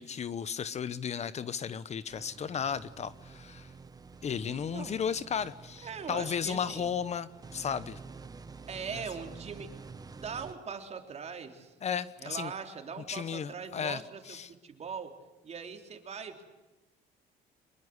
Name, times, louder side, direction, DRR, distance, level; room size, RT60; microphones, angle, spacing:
voice 1, 0.0-3.7 4.2-8.0 11.8-12.5 13.1-14.5, left 7 dB, 40° left, 16 dB, 1.0 m, -34 dB
sound 1, 2.1-10.5, right 4 dB, 20° right, 1.4 m, -49 dB
voice 2, 4.4-5.0 5.8-6.9 8.7-9.7 10.1-11.7 12.2-15.2 15.4-16.4, right 6 dB, 40° right, 5 dB, 3.6 m, -41 dB
25.0 x 22.0 x 8.0 m, 1.1 s
cardioid pair, 110°, 17 cm